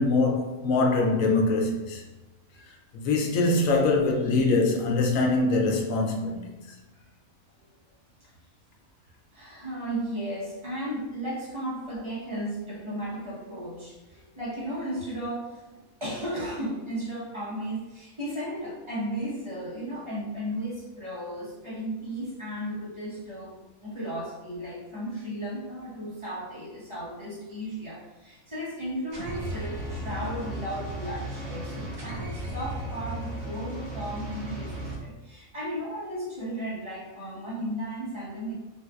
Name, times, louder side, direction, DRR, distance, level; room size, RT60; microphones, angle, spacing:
voice 1, 0.0-2.0 2.9-6.4, left 3 dB, 70° left, 0.9 m, -23 dB
voice 2, 9.3-15.6 16.0-23.5 23.8-38.6, right 1 dB, 25° right, 0.8 m, -35 dB
sound 1, 29.1-35.0, right 1 dB, 60° right, 0.8 m, -35 dB
3.7 x 2.6 x 2.3 m
omnidirectional pair, 1.5 m